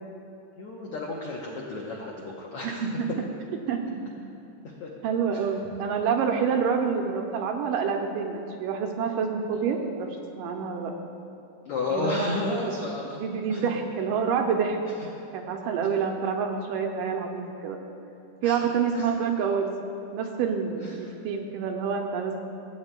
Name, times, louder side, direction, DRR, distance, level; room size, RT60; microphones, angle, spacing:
voice 1, 0.6-2.8 4.6-4.9 5.3-5.4 9.5-9.6 11.6-13.2 13.5-13.7 18.4-18.7 18.9-19.1 20.8-21.0, left 3 dB, 80° left, -3 dB, 1.3 m, -33 dB
voice 2, 2.6-3.1 3.7-4.0 5.0-10.1 10.4-10.9 11.9-12.7 13.1-14.8 15.3-17.8 18.4-19.7 20.1-22.4, right 6 dB, 80° right, 2 dB, 2.2 m, -27 dB
17.5 x 8.8 x 2.2 m, 2.8 s
omnidirectional pair, 3.9 m